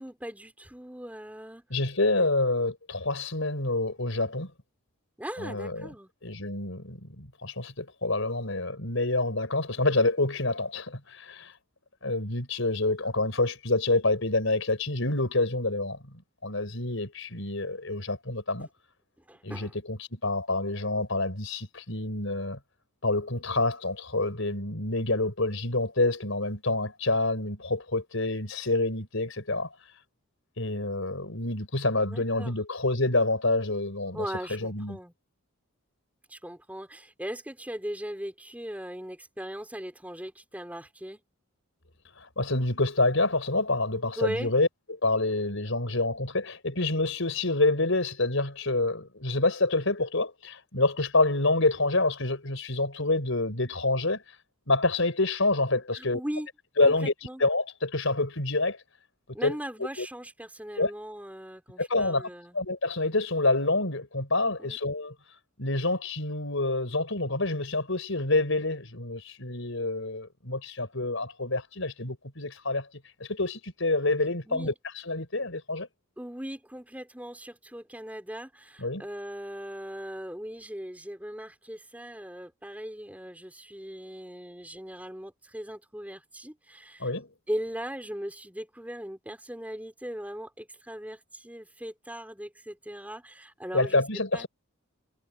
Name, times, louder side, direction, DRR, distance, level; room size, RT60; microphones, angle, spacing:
voice 1, 0.0-1.7 2.2-2.3 5.2-6.1 18.6-18.7 19.3-19.7 32.0-32.6 34.1-35.1 36.3-41.2 44.2-44.5 55.9-56.5 56.8-57.4 59.3-62.6 64.6-64.8 74.5-74.7 76.2-87.1 87.5-94.0 94.3-94.5, equal, 5° right, 4.0 m, -39 dB
voice 2, 1.7-4.5 5.4-5.9 6.2-11.5 12.0-16.0 16.4-18.7 19.4-22.6 23.0-29.7 30.6-34.3 34.5-35.0 42.2-44.7 45.0-54.2 54.7-56.2 56.8-57.1 57.4-58.8 59.4-59.5 60.0-60.1 60.8-60.9 61.8-62.3 62.5-65.1 65.6-72.9 73.2-74.7 75.0-75.9 78.8-79.0 87.0-87.3 93.7-94.5, left 2 dB, 65° left, 5.4 m, -27 dB
head